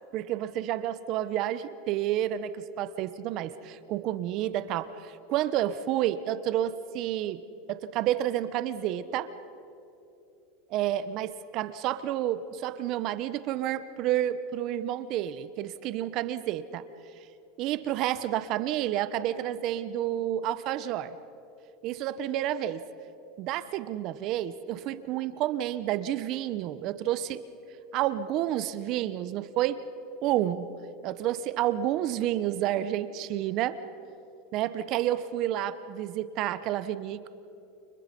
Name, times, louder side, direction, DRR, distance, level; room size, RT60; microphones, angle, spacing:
voice 1, 0.1-7.4 7.7-9.3 10.7-16.8 17.6-21.2 21.8-22.8 23.4-27.4 27.9-29.8 30.2-30.7 31.0-33.8 34.5-37.3, right 12 dB, 50° right, 13 dB, 1.1 m, -30 dB
30.0 x 29.0 x 5.4 m, 2.8 s
supercardioid pair, 120°, 0 cm